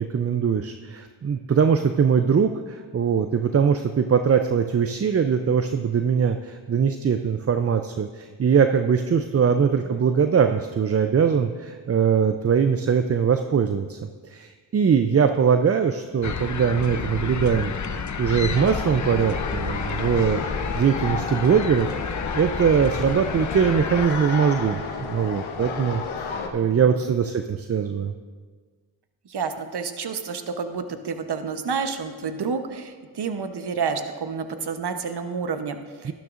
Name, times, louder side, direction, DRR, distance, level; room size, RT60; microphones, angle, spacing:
voice 1, 0.0-14.0 14.2-28.1 36.0-36.1, right 7 dB, 35° right, 8 dB, 0.5 m, -22 dB
voice 2, 9.6-10.0 26.3-26.9 29.2-36.1, right 5 dB, 55° right, 8 dB, 1.0 m, -30 dB
sound 1, 16.2-24.1, left 5 dB, 40° left, 0.7 m, -30 dB
sound 2, 18.5-26.5, left 5 dB, 85° left, 1.0 m, -32 dB
12.0 x 12.0 x 2.5 m, 1.5 s
cardioid pair, 50°, 46 cm